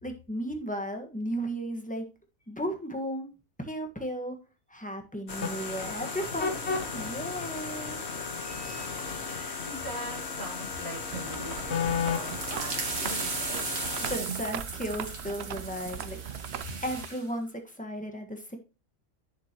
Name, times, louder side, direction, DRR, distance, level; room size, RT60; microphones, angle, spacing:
voice 1, 0.0-2.0 2.5-3.3 3.6-4.4 4.7-8.0 14.1-16.2 16.8-18.6, equal, 5° left, 4 dB, 1.5 m, -35 dB
sound 1, 5.3-14.2, left 5 dB, 55° left, 1.5 m, -34 dB
voice 2, 8.3-13.7 16.6-16.7, equal, 30° left, -3 dB, 4.5 m, -43 dB
sound 2, 11.1-17.1, right 9 dB, 60° right, 0.8 m, -39 dB
sound 3, 11.8-17.2, right 4 dB, 85° right, 2.0 m, -37 dB
10.0 x 6.7 x 3.0 m, 0.30 s
omnidirectional pair, 1.4 m